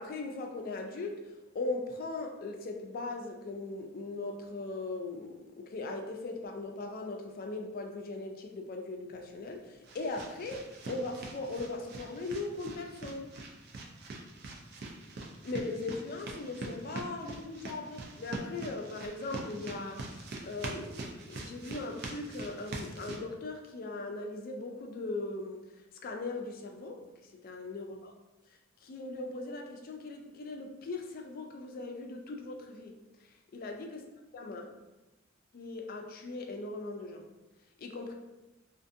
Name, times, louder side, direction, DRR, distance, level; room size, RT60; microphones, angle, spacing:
voice 1, 0.0-13.3 15.4-25.6 26.0-27.0 27.4-28.1 28.8-32.9 33.5-34.0 34.3-34.7 35.5-37.3 37.8-38.1, left 3 dB, 45° left, 2 dB, 0.3 m, -39 dB
sound 1, 9.2-23.2, right 2 dB, 50° right, 0.4 m, -43 dB
2.5 x 2.5 x 2.6 m, 1.1 s
head